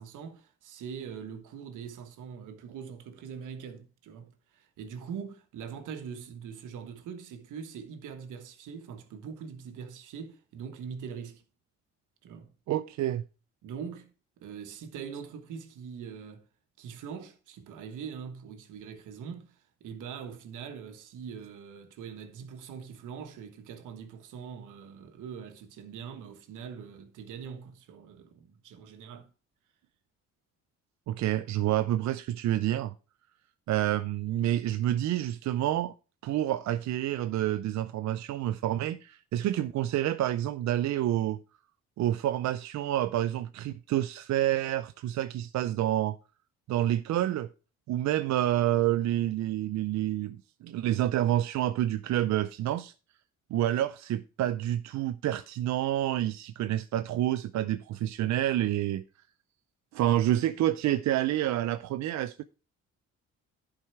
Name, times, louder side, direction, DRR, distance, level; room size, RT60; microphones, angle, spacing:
voice 1, 0.0-11.4 12.2-12.5 13.6-14.1 14.4-16.4 16.8-29.3, right 7 dB, 85° right, 1.4 m, -42 dB
voice 2, 12.7-13.2 31.1-32.9 33.7-35.9 36.2-41.4 42.0-46.2 46.7-47.5 47.9-52.9 53.5-59.0 59.9-62.4, right 13 dB, 65° right, 0.5 m, -28 dB
11.0 x 4.8 x 4.6 m
cardioid pair, 90°, 30 cm